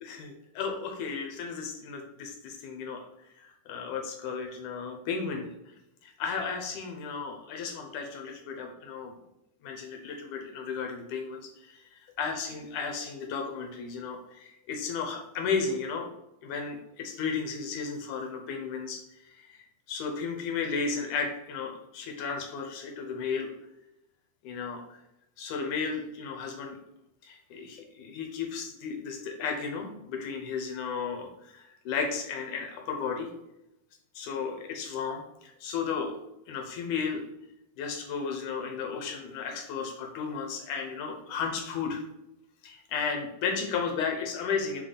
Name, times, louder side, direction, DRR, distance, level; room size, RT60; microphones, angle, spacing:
voice 1, 0.0-3.0 3.4-5.5 6.0-9.1 9.6-16.1 16.4-19.0 19.3-23.5 24.4-25.0 25.4-26.8 27.2-33.3 34.2-37.2 37.8-42.0 42.6-44.8, left 5 dB, 75° left, 3 dB, 2.1 m, -34 dB
6.6 x 4.1 x 4.0 m, 0.87 s
omnidirectional pair, 4.1 m